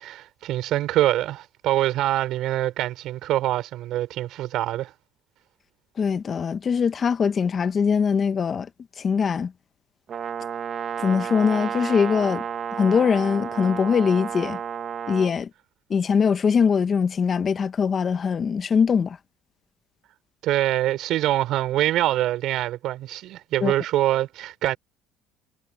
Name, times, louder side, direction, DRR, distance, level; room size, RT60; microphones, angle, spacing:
voice 1, 0.0-4.9 20.4-24.8, right 14 dB, 65° right, 5.7 m, -24 dB
voice 2, 6.0-8.7 9.0-9.5 11.0-12.4 12.7-14.6 15.1-15.5 15.9-19.2 23.6-23.7, left 6 dB, 35° left, 1.0 m, -22 dB
Brass instrument, 10.1-15.3, right 8 dB, 40° right, 1.7 m, -31 dB
cardioid pair, 120°, 0 cm